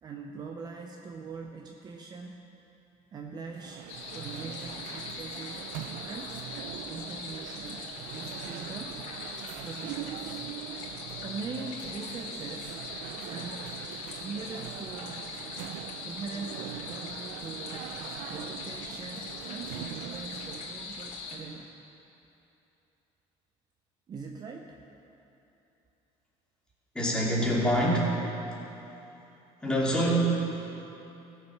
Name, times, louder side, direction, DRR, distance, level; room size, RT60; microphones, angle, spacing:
voice 1, 0.0-2.4 3.1-3.8 4.1-5.7 6.0-6.4 6.9-9.0 9.6-10.5 11.2-12.8 13.3-13.7 14.2-15.2 16.0-17.9 18.3-21.7 24.1-24.8, right 4 dB, 30° right, 2 dB, 0.7 m, -42 dB
sound 1, 3.5-20.8, right 12 dB, 85° right, 0.4 m, -42 dB
sound 2, 3.9-21.4, left 4 dB, 70° left, 2.5 m, -41 dB
voice 2, 26.9-28.2 29.6-30.3, right 1 dB, 5° left, -6 dB, 2.7 m, -25 dB
16.5 x 7.4 x 5.8 m, 2.9 s
cardioid pair, 140°, 13 cm